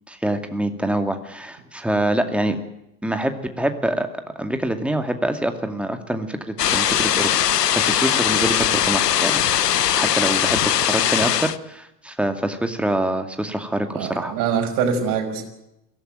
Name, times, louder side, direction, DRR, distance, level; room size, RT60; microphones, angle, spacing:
voice 1, 0.1-2.6 3.0-4.1 4.4-7.3 7.7-14.3, right 1 dB, ahead, 7 dB, 2.3 m, -25 dB
sound 1, 6.6-11.6, left 10 dB, 75° left, 1.0 m, -20 dB
voice 2, 13.9-15.4, right 6 dB, 45° right, 3 dB, 5.7 m, -23 dB
22.5 x 17.0 x 9.2 m, 0.87 s
figure-of-eight pair, 85°, 49 cm